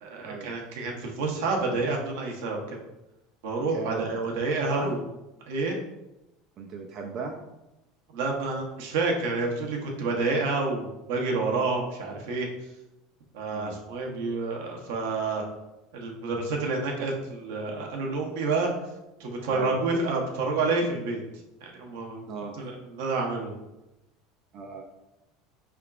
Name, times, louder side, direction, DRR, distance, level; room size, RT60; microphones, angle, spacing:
voice 1, 0.0-2.8 3.4-5.1 5.5-5.8 8.1-12.5 13.3-15.4 15.9-18.7 19.2-21.2 21.6-22.2 22.6-23.6, right 3 dB, 80° right, 0 dB, 0.9 m, -29 dB
voice 2, 6.6-7.4 13.5-13.8 19.5-19.9 22.3-22.6 24.5-24.8, right 5 dB, 50° right, 1 dB, 0.5 m, -36 dB
4.5 x 3.5 x 2.4 m, 0.94 s
supercardioid pair, 115°, 0 cm